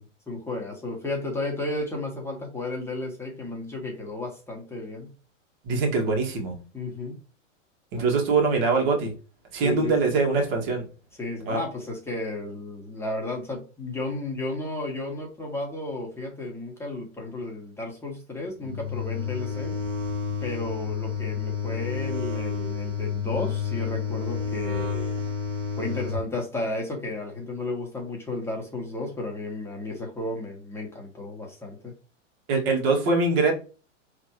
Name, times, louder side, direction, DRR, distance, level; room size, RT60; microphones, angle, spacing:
voice 1, 0.0-5.1 6.7-7.2 8.0-8.1 9.6-9.9 11.2-19.7 20.4-25.1 25.8-31.9, left 2 dB, 5° left, -1 dB, 1.5 m, -33 dB
voice 2, 5.7-6.5 7.9-9.1 9.5-10.8 11.5-11.6 32.5-33.5, right 3 dB, 50° right, 1 dB, 2.1 m, -23 dB
sound 1, 18.6-26.2, left 6 dB, 75° right, 1.8 m, -30 dB
4.9 x 3.5 x 3.0 m, 0.34 s
hypercardioid pair, 120°, 38 cm